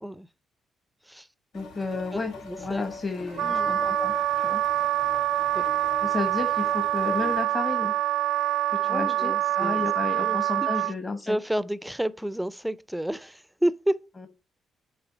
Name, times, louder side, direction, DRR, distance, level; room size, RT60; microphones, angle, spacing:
sound 1, 1.5-7.4, left 4 dB, 90° left, 1.4 m, -41 dB
voice 1, 1.5-2.3 2.6-4.1 4.4-4.6 6.0-7.9 8.8-11.4 14.2-14.3, left 3 dB, 30° left, 1.1 m, -32 dB
voice 2, 2.1-2.8 3.4-3.9 5.5-5.7 8.8-9.9 10.2-10.9 11.3-14.0, right 1 dB, 5° right, 0.4 m, -31 dB
Wind instrument woodwind instrument, 3.4-10.9, right 13 dB, 75° right, 0.5 m, -25 dB
8.8 x 3.2 x 4.0 m
cardioid pair, 90°, 0 cm